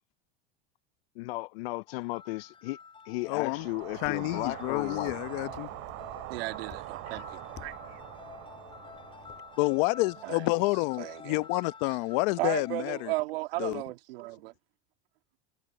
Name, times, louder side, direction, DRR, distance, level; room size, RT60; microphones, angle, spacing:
voice 1, 1.2-2.8 3.1-5.2, left 22 dB, 80° left, 0.5 m, -35 dB
sound 1, 1.9-13.1, left 5 dB, 20° left, 7.1 m, -50 dB
voice 2, 3.3-3.7 4.0-5.7 9.6-13.1 13.6-13.8, left 24 dB, 65° left, 1.0 m, -29 dB
sound 2, 3.3-11.5, right 21 dB, 55° right, 2.6 m, -44 dB
sound 3, 3.9-9.4, left 12 dB, 35° left, 6.6 m, -53 dB
voice 3, 6.3-7.8 10.2-10.5 11.0-11.4 12.4-14.5, right 20 dB, 80° right, 1.9 m, -35 dB
supercardioid pair, 140°, 29 cm